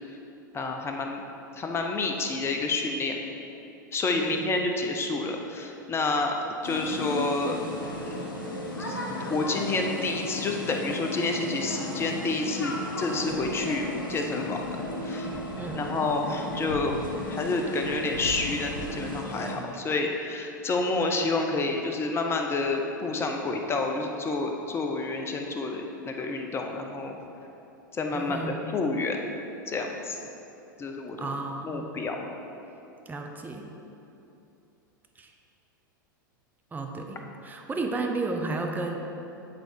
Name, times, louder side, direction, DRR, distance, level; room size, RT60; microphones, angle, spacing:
voice 1, 0.5-1.2 1.6-3.2 3.9-6.4 6.6-7.6 8.1-8.3 8.8-9.0 9.3-14.8 15.0-15.3 15.7-17.0 17.3-27.1 27.9-28.4 28.7-29.3 29.7-30.2 30.8-31.3 31.6-32.3, left 3 dB, 20° left, 3 dB, 0.8 m, -29 dB
sound 1, 6.6-19.5, left 1 dB, 85° left, 1.1 m, -35 dB
voice 2, 15.6-15.9 28.1-28.7 31.2-31.9 33.1-33.7 35.2-35.3 36.7-39.0, right 3 dB, 15° right, 2 dB, 0.8 m, -33 dB
8.8 x 3.9 x 4.6 m, 2.9 s
hypercardioid pair, 95°, 11 cm